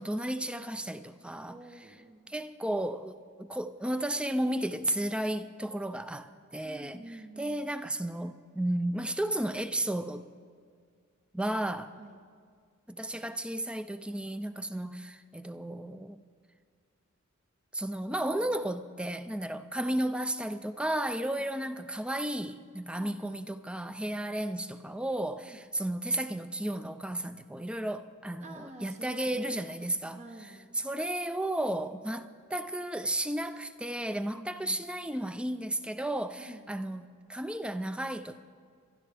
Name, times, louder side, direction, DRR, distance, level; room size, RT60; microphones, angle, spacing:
voice 1, 0.0-1.6 2.3-7.0 7.4-10.3 11.3-11.9 12.9-16.2 17.7-30.2 30.8-38.4, right 1 dB, 5° right, 0.4 m, -33 dB
voice 2, 1.5-2.4 6.6-7.7 12.0-12.2 21.2-21.5 22.9-23.4 25.4-25.6 28.4-29.8 30.1-30.6 34.3-34.9 36.4-36.7, right 1 dB, 35° right, 0.9 m, -49 dB
27.0 x 12.0 x 3.4 m
head